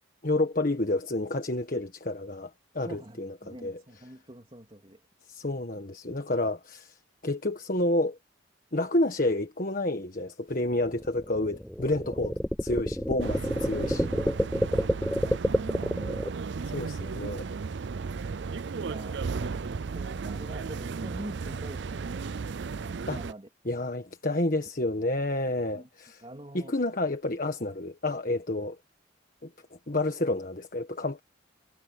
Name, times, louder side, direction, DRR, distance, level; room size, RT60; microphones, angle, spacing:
voice 1, 0.2-3.8 5.3-7.0 7.2-8.2 8.7-14.1 16.7-17.5 23.1-23.2 23.6-26.2 26.5-28.8 29.4-29.5 29.9-31.2, left 2 dB, 45° left, 1.5 m, -29 dB
voice 2, 2.8-5.0 13.6-13.7 14.7-16.3 18.8-22.4 23.1-23.5 25.4-25.9 26.2-26.8, right 1 dB, 25° right, 3.0 m, -45 dB
sound 1, 10.5-16.3, equal, ahead, 0.3 m, -28 dB
sound 2, 13.2-23.3, right 5 dB, 60° right, 0.5 m, -35 dB
head